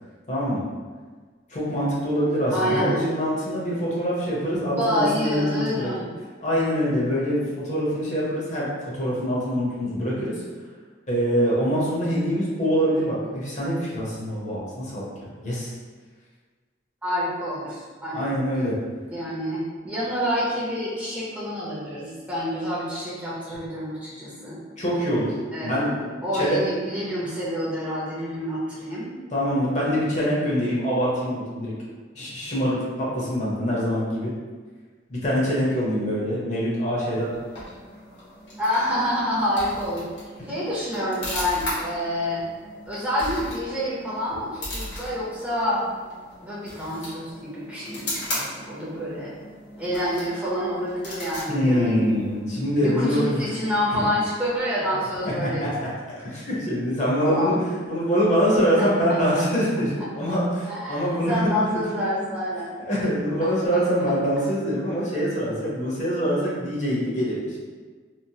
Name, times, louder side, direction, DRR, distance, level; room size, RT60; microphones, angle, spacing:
voice 1, 0.3-0.6 1.5-5.9 6.4-8.7 8.9-10.4 11.1-15.1 15.4-15.7 18.1-18.8 24.8-25.4 25.6-25.9 26.3-26.6 29.3-31.7 32.1-34.3 35.1-37.3 51.5-53.4 53.9-54.0 55.2-55.9 56.3-57.6 57.8-61.8 62.8-67.6, equal, 40° left, -6 dB, 0.7 m, -24 dB
voice 2, 2.5-3.1 4.5-6.1 17.0-18.3 19.1-24.6 25.5-25.9 26.2-29.1 38.6-40.1 40.5-42.4 42.8-45.8 46.4-49.3 49.8-52.1 52.8-55.6 57.2-57.6 58.8-58.9 60.7-62.7, equal, 10° right, -9 dB, 0.6 m, -27 dB
sound 1, 37.0-52.6, left 1 dB, 75° left, 1.1 m, -37 dB
3.0 x 2.0 x 2.7 m, 1.4 s
head